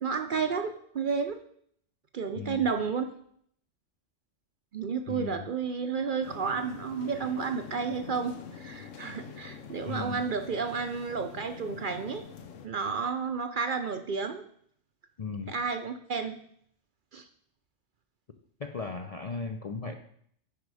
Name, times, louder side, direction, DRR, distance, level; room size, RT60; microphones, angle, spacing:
voice 1, 0.0-1.4 2.1-3.0 4.7-12.2 12.6-14.4 15.5-16.4 17.1-17.3, right 5 dB, 55° right, 8 dB, 0.6 m, -31 dB
voice 2, 2.4-2.7 5.1-5.5 9.9-10.3 15.2-15.6 18.6-19.9, left 4 dB, 50° left, 5 dB, 0.4 m, -36 dB
sound 1, 6.2-12.7, left 6 dB, 90° left, 1.2 m, -45 dB
9.3 x 5.1 x 4.8 m, 0.64 s
omnidirectional pair, 1.3 m